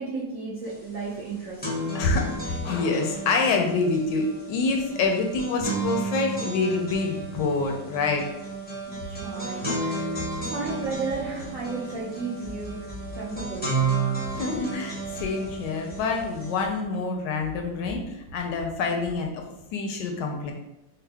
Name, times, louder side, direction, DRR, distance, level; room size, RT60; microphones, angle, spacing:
voice 1, 0.0-1.9 8.9-12.8 13.2-13.9, right 3 dB, 65° right, -5 dB, 0.8 m, -34 dB
sound 1, 0.7-0.8 1.1-16.6, right 3 dB, 10° left, 0.4 m, -32 dB
voice 2, 1.9-8.2 14.3-19.4 19.7-20.5, left 4 dB, 75° left, 2 dB, 1.2 m, -26 dB
sound 2, 10.2-19.7, right 1 dB, 80° right, 0.4 m, -45 dB
4.4 x 2.0 x 3.3 m, 0.90 s
omnidirectional pair, 2.0 m